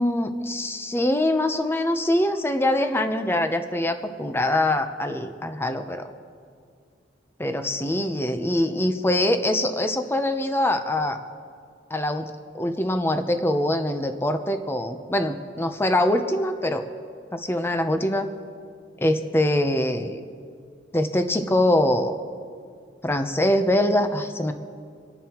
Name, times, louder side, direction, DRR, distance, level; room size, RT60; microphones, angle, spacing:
voice 1, 0.0-6.0 7.4-11.2 11.9-16.8 17.3-18.3 19.0-20.2 20.9-22.2 23.0-24.5, left 1 dB, 15° left, 7 dB, 0.7 m, -23 dB
27.5 x 11.0 x 3.0 m, 2.3 s
head